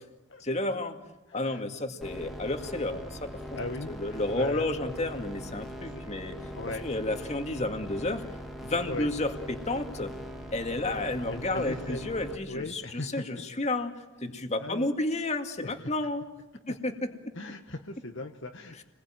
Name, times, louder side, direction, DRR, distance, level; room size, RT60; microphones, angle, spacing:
voice 1, 0.4-1.0 1.3-3.4 3.9-6.4 6.8-8.2 8.6-10.1 10.5-16.2 16.7-16.9 17.2-17.3, left 2 dB, 30° left, 6 dB, 2.2 m, -31 dB
voice 2, 1.3-1.6 3.5-4.7 5.8-6.0 6.5-6.9 8.9-9.1 11.3-12.0 12.5-13.2 14.6-14.9 15.6-15.9 16.7-16.8 17.3-18.8, left 2 dB, 55° left, 4 dB, 1.4 m, -38 dB
sound 1, 2.0-12.4, equal, ahead, 2.3 m, -41 dB
30.0 x 21.0 x 9.1 m, 1.0 s
head